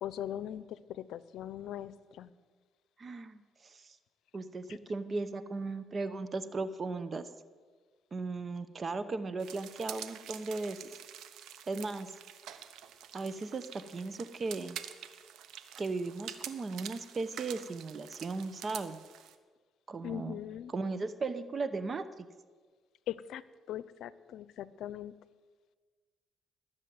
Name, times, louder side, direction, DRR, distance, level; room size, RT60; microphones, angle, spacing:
voice 1, 0.0-2.3 4.7-4.8 20.0-20.7 23.1-23.4 23.7-25.1, left 11 dB, 80° left, 17 dB, 0.6 m, -40 dB
voice 2, 3.0-4.0 4.3-7.3 8.1-10.8 11.7-12.1 13.1-14.8 15.8-19.0 19.9-20.4 20.7-22.3, right 3 dB, 40° right, 13 dB, 0.9 m, -37 dB
sound 1, 9.4-19.4, right 9 dB, 85° right, 1.1 m, -47 dB
20.0 x 7.3 x 9.4 m, 1.5 s
cardioid pair, 90°, 0 cm